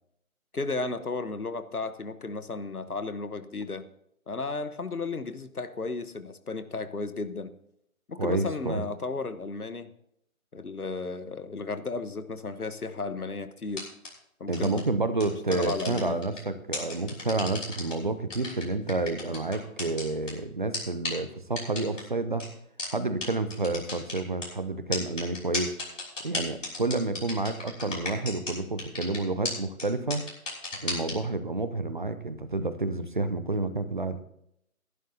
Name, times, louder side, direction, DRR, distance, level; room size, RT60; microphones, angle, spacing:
voice 1, 0.5-3.9 4.3-7.5 8.1-9.9 10.5-13.9 14.4-14.8 15.5-16.2, left 3 dB, 90° left, 11 dB, 1.3 m, -34 dB
voice 2, 8.2-8.8 14.5-22.5 22.9-25.7 26.2-30.2 30.8-34.2, right 2 dB, 35° right, 11 dB, 0.7 m, -29 dB
sound 1, 13.7-14.1 14.5-14.8 15.2-16.4 16.7-17.9 18.3-20.3 20.7-20.8 21.0-21.1 21.6-22.0 22.4-22.5 22.8-22.9 23.2-23.3 23.5-24.5 24.9-28.5 28.8-29.2 29.4-29.5 29.8-29.9 30.1-31.1, left 3 dB, 60° left, 6.0 m, -33 dB
21.5 x 11.5 x 2.8 m, 0.75 s
figure-of-eight pair, 155°, 43 cm